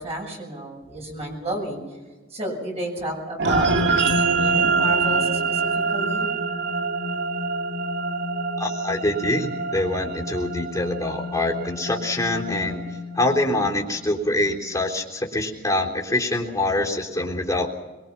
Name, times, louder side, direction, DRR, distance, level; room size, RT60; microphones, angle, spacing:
voice 1, 0.0-1.8 2.3-6.3, right 1 dB, 30° right, -1 dB, 7.0 m, -31 dB
sound 1, 3.4-14.0, right 3 dB, 60° right, 1.7 m, -25 dB
voice 2, 8.6-12.8 13.2-17.7, left 1 dB, 15° left, 0 dB, 3.6 m, -25 dB
23.5 x 22.5 x 5.9 m, 1.2 s
head